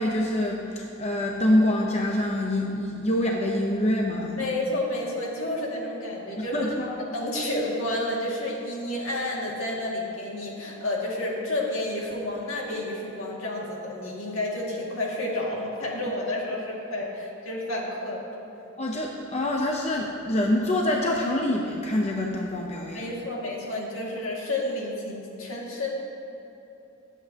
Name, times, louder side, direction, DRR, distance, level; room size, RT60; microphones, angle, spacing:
voice 1, 0.0-4.5 6.4-6.9 18.8-23.1, left 1 dB, 30° left, 0 dB, 0.7 m, -25 dB
voice 2, 4.4-18.4 22.9-25.9, left 1 dB, 70° left, -3 dB, 2.2 m, -30 dB
23.5 x 8.2 x 2.9 m, 2.9 s
head